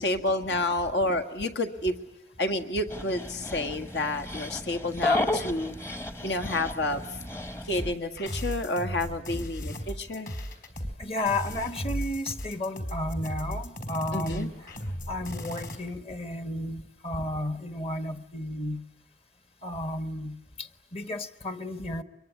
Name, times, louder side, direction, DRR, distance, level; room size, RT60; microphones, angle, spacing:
voice 1, 0.0-2.0 2.4-5.8 6.2-7.0 7.6-10.3 14.1-14.5, left 2 dB, 75° left, 1.9 m, -29 dB
Dog, 2.9-7.9, left 2 dB, 15° left, 0.9 m, -33 dB
sound 1, 7.8-15.8, equal, 50° left, 4.0 m, -36 dB
voice 2, 11.0-14.6 15.1-18.8 19.6-22.0, left 1 dB, 35° left, 1.2 m, -33 dB
25.0 x 22.5 x 9.9 m
head